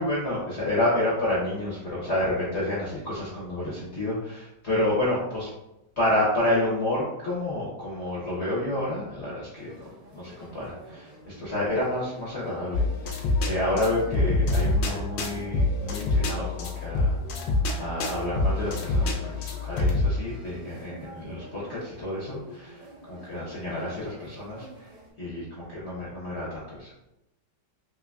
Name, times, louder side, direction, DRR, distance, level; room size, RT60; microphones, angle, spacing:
voice 1, 0.0-5.5 6.0-9.7 10.1-12.8 13.2-17.2 17.8-27.1, left 1 dB, 60° left, -6 dB, 0.7 m, -29 dB
sound 1, 9.5-25.1, right 1 dB, 50° right, 1.0 m, -49 dB
sound 2, 12.7-20.1, left 2 dB, 75° left, 1.3 m, -26 dB
3.7 x 3.2 x 2.3 m, 0.93 s
omnidirectional pair, 2.1 m